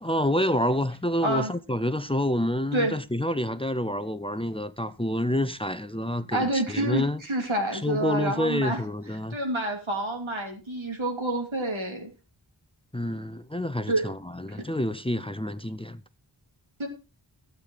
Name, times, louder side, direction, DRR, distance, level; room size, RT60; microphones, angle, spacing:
voice 1, 0.0-7.2 7.7-9.4 12.9-16.0, left 1 dB, 10° left, 0.6 m, -28 dB
voice 2, 6.3-8.8 9.3-12.1 13.9-14.1 14.5-14.6 16.8-16.9, right 1 dB, 85° right, 2.8 m, -28 dB
13.5 x 8.3 x 3.9 m
wide cardioid pair, 40°, 46 cm